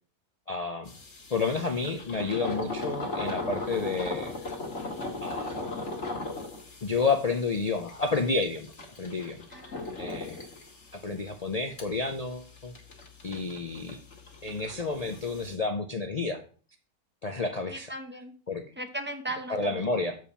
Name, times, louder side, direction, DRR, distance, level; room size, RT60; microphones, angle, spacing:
voice 1, 0.5-0.9 1.3-4.3 5.2-5.5 6.8-8.7 9.0-9.4 10.0-10.4 10.9-12.7 13.2-14.0 14.4-16.4 17.2-17.9 18.5-18.6 19.5-20.2, left 4 dB, 70° left, 6 dB, 0.3 m, -30 dB
sound 1, 0.8-15.5, left 2 dB, 50° left, 1.9 m, -38 dB
voice 2, 9.5-9.9 17.7-18.3 18.8-19.9, right 1 dB, 10° right, 5 dB, 0.6 m, -37 dB
7.0 x 4.7 x 5.6 m, 0.41 s
omnidirectional pair, 1.6 m